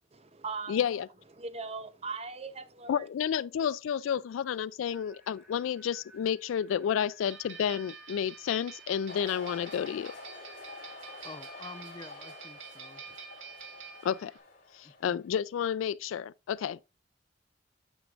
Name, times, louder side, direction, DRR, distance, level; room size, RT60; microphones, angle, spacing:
voice 1, 0.1-0.9 1.4-3.1, right 4 dB, 30° right, 0.6 m, -39 dB
voice 2, 0.7-1.1 2.9-10.1 14.0-14.3 14.7-16.9, left 8 dB, 85° left, 0.3 m, -31 dB
sound 1, 4.9-10.2, right 1 dB, ahead, 2.0 m, -59 dB
sound 2, 7.3-14.4, right 6 dB, 80° right, 1.7 m, -48 dB
sound 3, 9.1-15.4, left 3 dB, 40° left, 2.9 m, -48 dB
voice 3, 11.2-13.0 14.8-15.2, left 3 dB, 20° left, 0.4 m, -48 dB
9.3 x 6.2 x 2.4 m
head